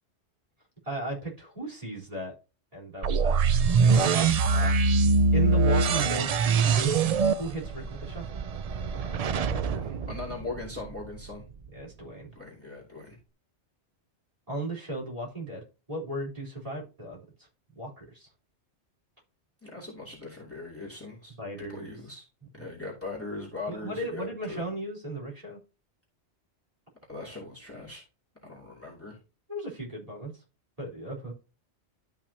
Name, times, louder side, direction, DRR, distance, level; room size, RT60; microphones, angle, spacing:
voice 1, 0.8-2.3 2.7-4.8 5.3-8.3 8.9-9.5 11.7-12.3 14.5-17.2 17.7-18.3 21.4-21.9 23.7-25.6 29.5-30.4 30.8-31.3, right 2 dB, 30° right, -4 dB, 4.0 m, -36 dB
sound 1, 3.0-10.9, right 4 dB, 60° right, 0.4 m, -24 dB
voice 2, 9.5-11.4 12.3-13.2 19.6-22.2 22.6-24.6 27.1-28.0 28.4-29.2, left 3 dB, 10° left, -2 dB, 2.7 m, -40 dB
12.0 x 5.9 x 2.8 m, 0.32 s
omnidirectional pair, 1.2 m